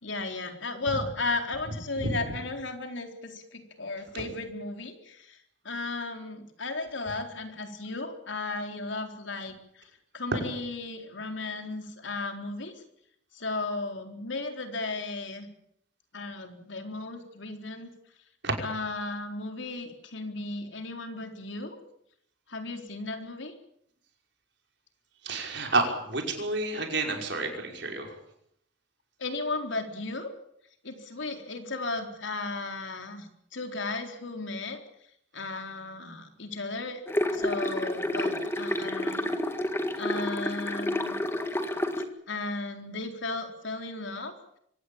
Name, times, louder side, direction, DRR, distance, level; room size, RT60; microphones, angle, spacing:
voice 1, 0.0-12.8 13.3-15.5 16.1-17.9 18.6-21.8 22.5-23.5 29.2-30.3 30.8-34.8 35.3-37.0 37.3-39.3 40.0-41.2 42.3-44.6, left 3 dB, 70° left, 5 dB, 4.0 m, -35 dB
voice 2, 25.2-28.1, right 2 dB, 60° right, 3 dB, 5.5 m, -29 dB
sound 1, 37.1-42.0, left 1 dB, 10° left, 1.9 m, -29 dB
24.5 x 18.0 x 8.7 m, 0.73 s
head